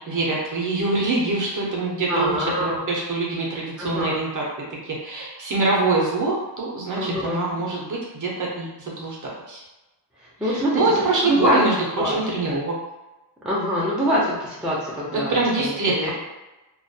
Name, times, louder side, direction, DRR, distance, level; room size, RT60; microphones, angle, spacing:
voice 1, 0.1-4.4 4.7-9.6 10.4-11.7 12.0-12.7 15.1-16.1, right 3 dB, 45° right, -4 dB, 0.5 m, -24 dB
voice 2, 2.1-2.8 3.8-4.2 6.9-7.4 10.2-11.0 11.2-11.6 12.0-12.2 12.5-12.6 13.4-16.1, equal, ahead, -6 dB, 0.5 m, -24 dB
2.2 x 2.2 x 2.6 m, 1.0 s
wide cardioid pair, 155°, 43 cm